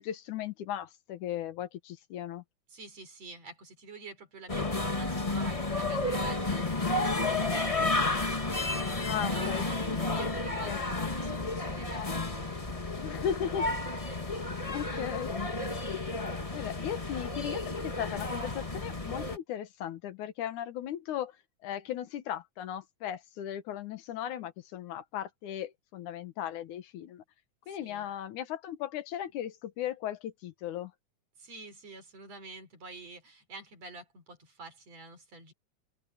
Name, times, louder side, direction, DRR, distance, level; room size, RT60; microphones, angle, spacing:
voice 1, 0.0-2.4 9.0-9.7 10.6-10.8 13.0-13.7 14.7-15.3 16.5-21.3 21.6-27.2 27.7-30.9, left 10 dB, 85° left, 2.7 m, -37 dB
voice 2, 2.7-12.9 14.0-15.4 27.7-28.1 31.4-35.5, right 3 dB, 60° right, 6.5 m, -48 dB
sound 1, 4.5-19.4, left 2 dB, 20° left, 1.0 m, -32 dB
open air
omnidirectional pair, 3.4 m